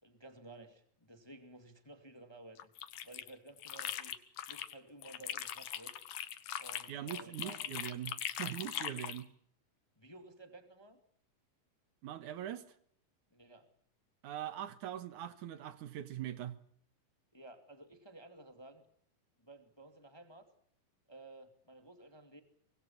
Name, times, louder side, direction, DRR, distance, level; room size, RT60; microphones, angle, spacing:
voice 1, 0.0-2.7 3.0-4.2 4.5-6.0 6.6-7.6 10.0-11.0 13.3-13.7 17.3-18.9 19.4-20.5 21.1-22.4, right 2 dB, 10° left, 1.8 m, -54 dB
sound 1, 2.6-4.7 5.0-9.2, left 11 dB, 75° left, 2.7 m, -41 dB
voice 2, 6.9-9.3 12.0-12.6 14.2-16.6, right 11 dB, 75° right, 2.7 m, -42 dB
24.5 x 22.0 x 7.2 m
omnidirectional pair, 3.6 m